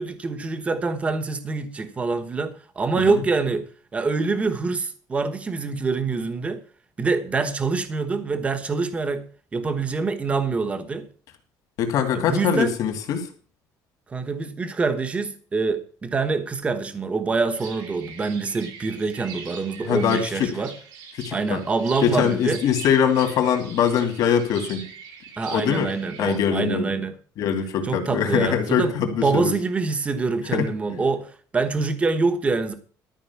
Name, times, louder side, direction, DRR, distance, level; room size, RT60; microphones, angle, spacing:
voice 1, 0.0-3.6 3.9-6.6 7.0-9.2 9.5-11.1 12.1-12.7 14.1-20.7 21.3-22.6 25.4-27.1 27.8-32.7, right 4 dB, 20° right, 1.1 m, -25 dB
voice 2, 11.8-13.3 19.8-20.5 21.2-21.6 22.0-24.9 25.5-25.9 26.2-26.9 27.4-29.5 30.5-30.7, left 8 dB, 60° left, 2.6 m, -22 dB
sound 1, 17.5-26.4, right 6 dB, 90° right, 3.7 m, -42 dB
13.0 x 5.3 x 8.3 m
cardioid pair, 170°, 7 cm